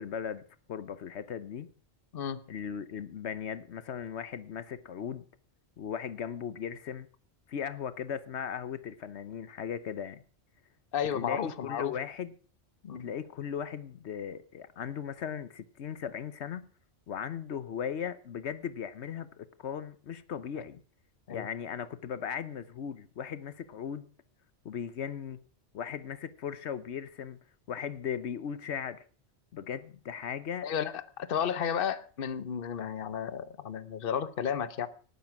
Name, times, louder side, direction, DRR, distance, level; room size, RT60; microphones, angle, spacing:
voice 1, 0.0-1.7 2.5-5.2 5.8-7.1 7.5-10.2 11.1-12.3 12.9-16.7 17.1-20.8 21.3-24.1 24.6-25.4 25.7-27.4 27.7-29.0 29.5-30.7, left 8 dB, 80° left, 1.1 m, -37 dB
voice 2, 10.9-12.0 12.8-13.1 21.3-21.5 30.6-34.9, left 8 dB, 55° left, 1.1 m, -33 dB
18.5 x 9.5 x 6.0 m
omnidirectional pair, 1.1 m